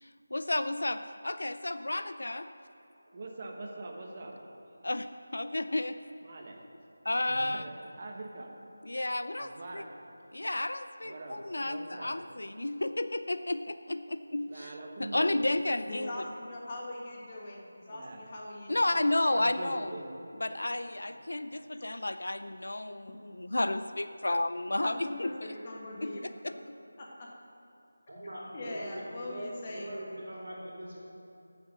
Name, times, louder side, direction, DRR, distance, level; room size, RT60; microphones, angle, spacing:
voice 1, 0.0-2.5 4.8-5.1 5.3-6.0 7.0-7.7 8.8-9.9 10.3-14.7 15.0-16.1 18.7-19.9 20.4-25.3 26.0-26.5, left 1 dB, 80° left, 11 dB, 0.4 m, -32 dB
voice 2, 3.1-4.4 4.7-4.9 6.2-6.6 7.3-8.5 9.4-9.9 11.0-12.2 14.5-15.5 17.9-18.2 19.3-20.1 21.1-21.3, right 2 dB, 30° right, 1 dB, 1.1 m, -44 dB
voice 3, 15.9-18.9 24.8-25.1 25.4-26.2 27.0-27.3 28.5-29.9, left 1 dB, 25° left, -2 dB, 1.5 m, -41 dB
voice 4, 28.1-31.0, right 1 dB, 75° right, -5 dB, 2.9 m, -42 dB
12.5 x 7.1 x 6.4 m, 2.7 s
figure-of-eight pair, 175°, 0 cm